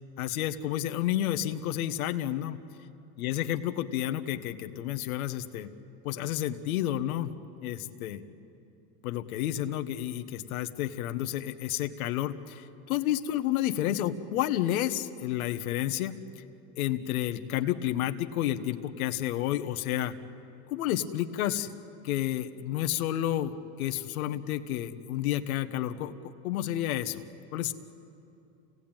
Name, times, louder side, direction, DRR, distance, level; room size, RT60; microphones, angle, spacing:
voice 1, 0.2-2.6 3.2-5.7 6.0-7.3 7.6-8.2 9.0-16.2 16.8-20.1 20.7-21.7 22.0-27.2 27.5-27.7, left 12 dB, 90° left, 7 dB, 1.4 m, -30 dB
28.5 x 18.0 x 9.0 m, 2.7 s
supercardioid pair, 110°, 41 cm